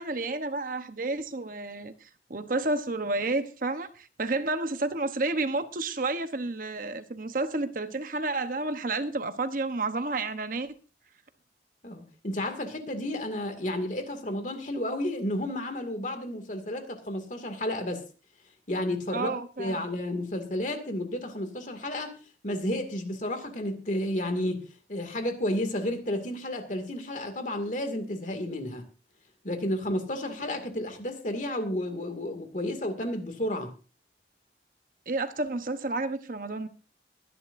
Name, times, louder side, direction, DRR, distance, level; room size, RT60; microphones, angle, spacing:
voice 1, 0.0-10.7 19.1-19.8 35.1-36.7, right 2 dB, 50° right, 1.0 m, -31 dB
voice 2, 11.8-18.0 18.7-22.1 22.4-24.6 24.9-28.9 29.4-33.7, left 1 dB, 45° left, 2.3 m, -32 dB
22.5 x 11.0 x 2.6 m
head